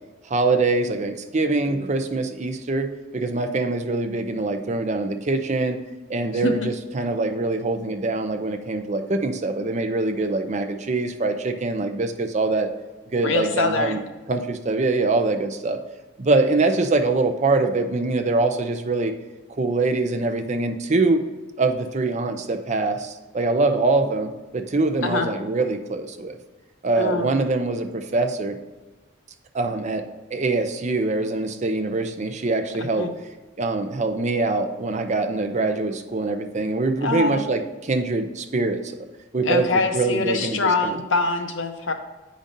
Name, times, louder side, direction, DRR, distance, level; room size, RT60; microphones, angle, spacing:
voice 1, 0.3-5.8 6.1-12.7 13.1-14.0 14.3-15.8 16.2-19.1 19.6-21.2 21.6-26.4 26.8-28.6 29.5-30.0 30.3-33.1 33.6-39.0 39.3-41.0, right 3 dB, 40° right, 6 dB, 0.5 m, -24 dB
voice 2, 13.2-14.0 25.0-25.3 27.0-27.5 32.8-33.1 37.0-37.5 39.4-41.9, left 3 dB, 90° left, 6 dB, 0.7 m, -24 dB
8.7 x 5.1 x 2.6 m, 1.2 s
head